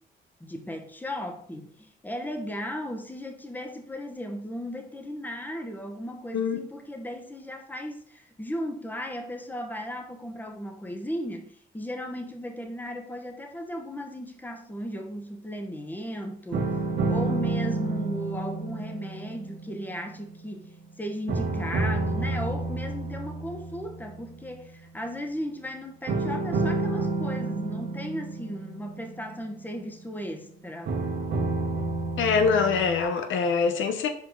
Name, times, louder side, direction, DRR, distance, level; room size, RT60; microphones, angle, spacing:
voice 1, 0.4-16.7 17.1-31.0, equal, 10° left, 1.1 m, -36 dB
sound 1, 16.5-20.9 21.3-24.6 26.1-30.1 30.9-33.0, right 3 dB, 65° right, 1.6 m, -30 dB
voice 2, 32.2-34.1, left 5 dB, 75° left, 0.8 m, -24 dB
5.7 x 4.9 x 3.7 m
cardioid pair, 90°, 20 cm